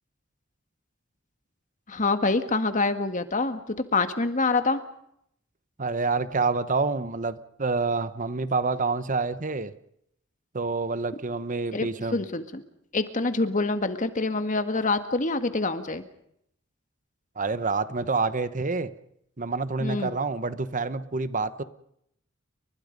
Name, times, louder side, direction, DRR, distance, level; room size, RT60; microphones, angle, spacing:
voice 1, 1.9-3.6 3.9-4.8 11.7-12.6 12.9-16.0 19.8-20.1, left 3 dB, 40° left, 9 dB, 1.8 m, -26 dB
voice 2, 5.8-9.7 10.5-12.2 17.4-18.9 19.4-21.6, right 4 dB, 40° right, 13 dB, 1.0 m, -27 dB
30.0 x 24.0 x 5.3 m, 0.74 s
head